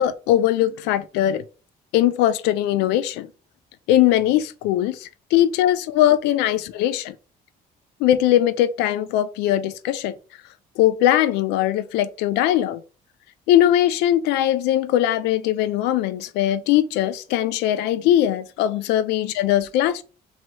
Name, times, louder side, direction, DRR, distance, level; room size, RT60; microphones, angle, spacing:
voice 1, 0.0-1.4 1.9-3.3 3.9-7.1 8.0-10.1 10.8-12.8 13.5-20.0, left 12 dB, 90° left, 0.4 m, -20 dB
3.0 x 2.8 x 4.4 m
cardioid pair, 110°, 17 cm